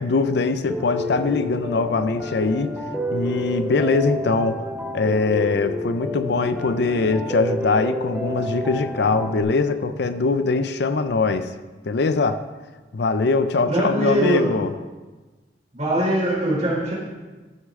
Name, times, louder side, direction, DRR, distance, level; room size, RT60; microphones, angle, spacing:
voice 1, 0.0-2.8 3.1-4.7 4.9-11.5 11.8-12.4 12.9-14.7, left 3 dB, 70° left, 11 dB, 0.5 m, -22 dB
Piano, 0.7-9.4, left 1 dB, 5° right, 0.8 m, -29 dB
voice 2, 13.7-14.6 15.7-16.9, right 1 dB, 40° right, -5 dB, 3.6 m, -22 dB
14.5 x 6.5 x 3.7 m, 1.3 s
head